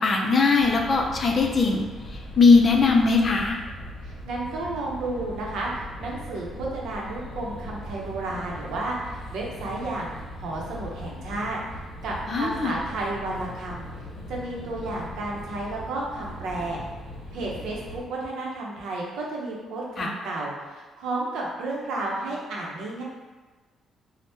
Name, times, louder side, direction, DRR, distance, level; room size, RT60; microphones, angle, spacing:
voice 1, 0.0-1.8 2.1-3.6 12.3-12.7 20.0-20.1, left 4 dB, 45° left, 2 dB, 0.4 m, -20 dB
sound 1, 0.6-18.0, equal, 85° left, 0.7 m, -40 dB
voice 2, 4.0-10.1 10.4-11.6 12.0-13.9 14.3-16.8 17.3-23.0, right 2 dB, 85° right, -3 dB, 0.6 m, -32 dB
3.3 x 2.0 x 2.7 m, 1.3 s
cardioid pair, 90°, 0 cm